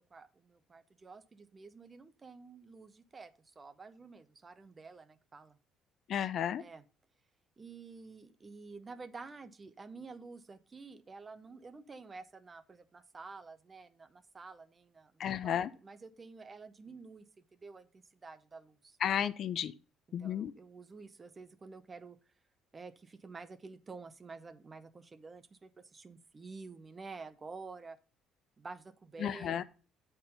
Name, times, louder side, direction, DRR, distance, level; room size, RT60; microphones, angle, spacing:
voice 1, 0.0-5.6 6.6-6.8 7.6-17.2 17.5-19.0 20.2-22.2 22.7-28.0 28.6-29.6, right 4 dB, 20° right, 0.6 m, -50 dB
voice 2, 6.1-6.6 15.2-15.7 19.0-19.7 20.1-20.5 29.2-29.6, left 9 dB, 45° left, 0.4 m, -33 dB
8.3 x 4.4 x 5.3 m
cardioid pair, 150°, 0 cm